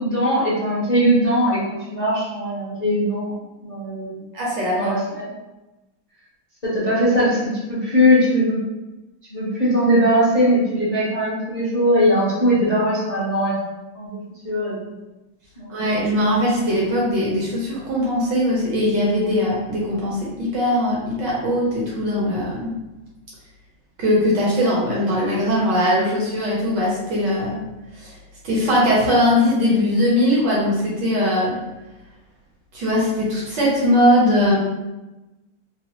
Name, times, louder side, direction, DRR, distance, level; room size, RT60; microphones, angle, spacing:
voice 1, 0.0-3.3 3.6-4.2 4.8-5.2 6.6-7.4 7.7-8.6 9.3-13.5 13.9-14.2 14.4-14.7 15.6-15.7, equal, 35° left, -10 dB, 0.6 m, -20 dB
voice 2, 4.3-5.0 15.7-22.7 24.0-27.5 28.0-28.1 28.4-31.5 32.7-34.6, left 1 dB, 65° right, -5 dB, 1.3 m, -20 dB
4.0 x 2.0 x 2.9 m, 1.0 s
omnidirectional pair, 2.4 m